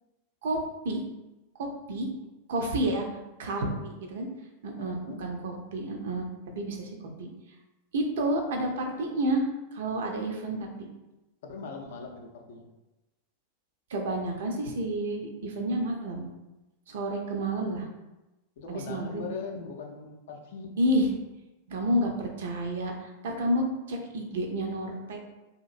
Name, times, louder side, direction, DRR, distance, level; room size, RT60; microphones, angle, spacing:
voice 1, 1.6-2.1 2.5-3.1 3.4-4.3 4.6-6.2 6.6-6.9 7.2-7.3 7.9-10.9 13.9-16.3 16.9-17.9 18.7-19.2 20.8-21.1 21.7-25.2, right 1 dB, 60° right, 3 dB, 0.4 m, -30 dB
voice 2, 4.8-5.2 11.4-12.7 18.6-20.8, left 4 dB, 55° left, 3 dB, 0.4 m, -40 dB
2.8 x 2.5 x 2.4 m, 1.0 s
figure-of-eight pair, 90°, 0 cm